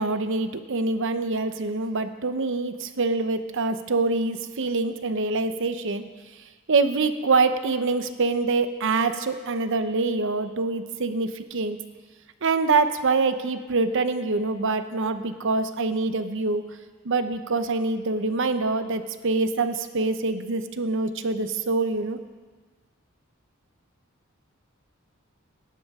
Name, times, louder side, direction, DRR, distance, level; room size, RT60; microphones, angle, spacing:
voice 1, 0.0-6.0 6.7-11.8 12.4-16.6 17.0-22.2, right 3 dB, 60° right, 10 dB, 0.8 m, -25 dB
19.5 x 10.5 x 3.7 m, 1.4 s
head